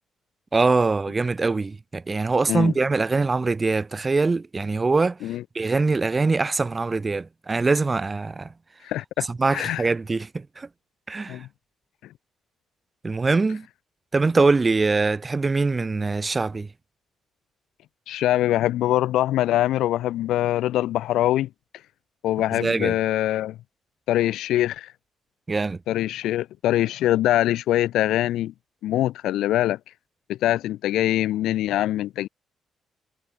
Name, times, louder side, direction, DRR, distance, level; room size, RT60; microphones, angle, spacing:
voice 1, 0.5-5.2 5.5-8.5 9.3-10.7 11.1-11.4 13.0-13.7 14.1-16.7 22.6-22.9 25.5-25.8, right 3 dB, 25° right, 2.6 m, -23 dB
voice 2, 8.8-9.8 11.3-11.5 18.1-21.5 22.2-23.6 24.1-24.9 25.9-28.5 28.8-29.8 30.3-32.3, left 14 dB, 85° left, 1.6 m, -23 dB
cardioid pair, 90°, 0 cm